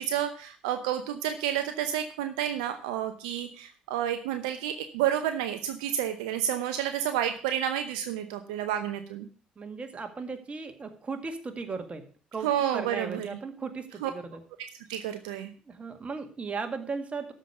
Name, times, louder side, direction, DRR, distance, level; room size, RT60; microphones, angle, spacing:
voice 1, 0.0-9.3 12.4-13.4 14.0-14.1 14.9-15.5, right 10 dB, 75° right, 8 dB, 0.7 m, -30 dB
voice 2, 9.6-12.0 12.3-14.4 15.7-17.3, right 4 dB, 30° right, 6 dB, 2.0 m, -36 dB
12.5 x 5.2 x 6.8 m, 0.41 s
figure-of-eight pair, 50°, 4 cm